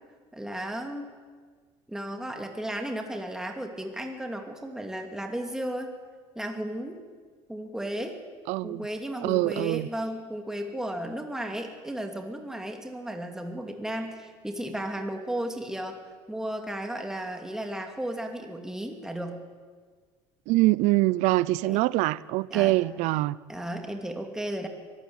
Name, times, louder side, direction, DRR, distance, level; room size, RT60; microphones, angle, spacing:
voice 1, 0.3-1.1 1.9-5.9 6.4-7.0 7.5-8.2 8.6-16.0 16.3-19.4 21.7-21.8 22.5-22.8 23.5-24.7, right 1 dB, 5° right, 2.6 m, -34 dB
voice 2, 8.5-8.9 9.2-9.9 20.5-23.4, right 19 dB, 70° right, 0.6 m, -24 dB
23.5 x 13.0 x 9.4 m
supercardioid pair, 95°, 12 cm